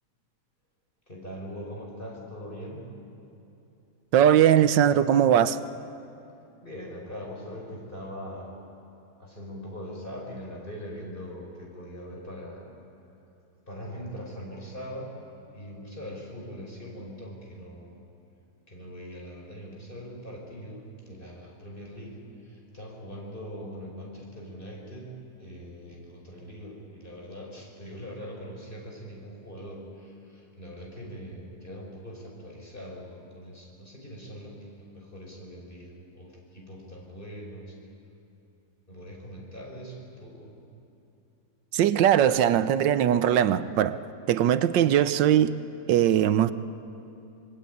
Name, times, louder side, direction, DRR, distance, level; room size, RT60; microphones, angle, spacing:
voice 1, 1.1-2.8 6.6-8.5 9.2-12.7 13.7-15.1 15.5-18.0 18.7-37.7 38.9-40.5, equal, 30° left, -1 dB, 5.9 m, -41 dB
voice 2, 4.1-5.6 41.7-44.0 44.3-45.6 45.9-46.5, right 10 dB, 85° right, 13 dB, 1.5 m, -20 dB
26.5 x 21.5 x 9.4 m, 2.8 s
omnidirectional pair, 1.9 m